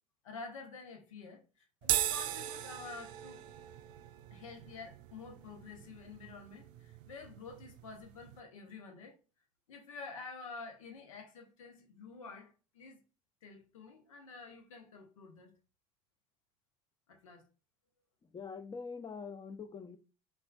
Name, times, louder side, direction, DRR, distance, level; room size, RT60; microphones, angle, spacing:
voice 1, 0.2-3.5 4.3-9.2 9.7-13.0 13.4-15.6 17.1-17.5, left 4 dB, 75° left, 1.0 m, -49 dB
sound 1, 1.8-8.4, right 13 dB, 50° right, 0.4 m, -39 dB
voice 2, 18.2-20.0, left 5 dB, 25° left, 0.7 m, -44 dB
5.5 x 2.5 x 2.3 m
figure-of-eight pair, 60°, 17 cm